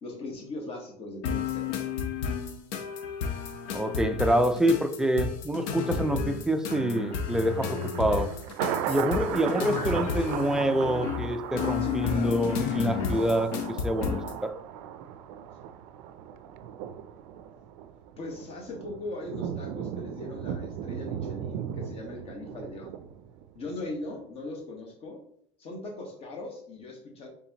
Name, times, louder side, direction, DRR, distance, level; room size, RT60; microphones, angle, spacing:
voice 1, 0.0-1.7 11.8-12.3 18.2-22.9 23.5-25.2 25.6-27.3, left 2 dB, 40° left, 1 dB, 1.2 m, -39 dB
sound 1, 1.2-14.4, left 6 dB, 75° left, 0.7 m, -32 dB
voice 2, 3.7-8.3 8.9-13.5 13.8-14.6, right 1 dB, 5° right, 7 dB, 0.3 m, -26 dB
Thunder, 6.7-23.8 24.2-24.3, right 9 dB, 80° right, 0.4 m, -37 dB
4.1 x 3.4 x 2.8 m, 0.65 s
supercardioid pair, 125°, 16 cm